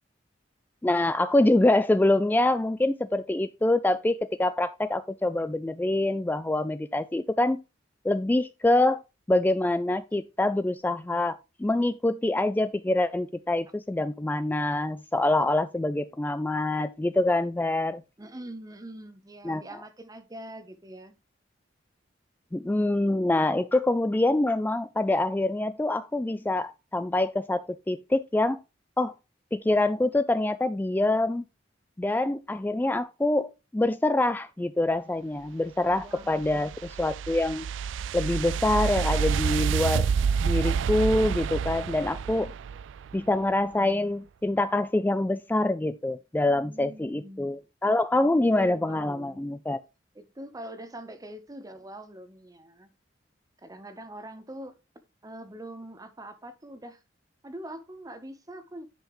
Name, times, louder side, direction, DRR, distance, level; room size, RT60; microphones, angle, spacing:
voice 1, 0.8-7.6 8.0-9.0 9.3-18.0 19.4-19.6 22.5-28.6 29.0-29.1 29.5-31.4 32.0-37.7 38.1-40.1 40.4-42.5 43.1-49.8, left 2 dB, 10° left, 0.3 m, -25 dB
voice 2, 18.2-21.1 36.0-36.7 46.6-47.5 48.6-49.5 50.1-52.9 53.6-54.8 55.2-57.0 57.4-58.9, right 1 dB, 20° right, 0.8 m, -43 dB
sound 1, 35.9-43.2, right 6 dB, 75° right, 0.3 m, -28 dB
10.0 x 5.6 x 3.0 m
head